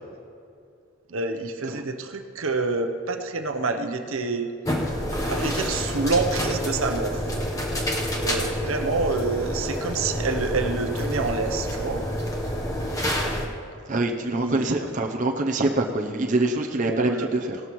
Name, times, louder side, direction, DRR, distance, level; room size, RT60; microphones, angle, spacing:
voice 1, 1.1-4.5 5.2-7.2 8.2-12.0 14.2-14.7 16.8-17.3, right 3 dB, 70° right, 6 dB, 0.8 m, -27 dB
sound 1, 4.6-13.4, equal, 15° left, 1.0 m, -28 dB
voice 2, 13.9-17.6, right 2 dB, 35° right, 1 dB, 0.6 m, -25 dB
17.5 x 13.0 x 3.1 m, 2.4 s
head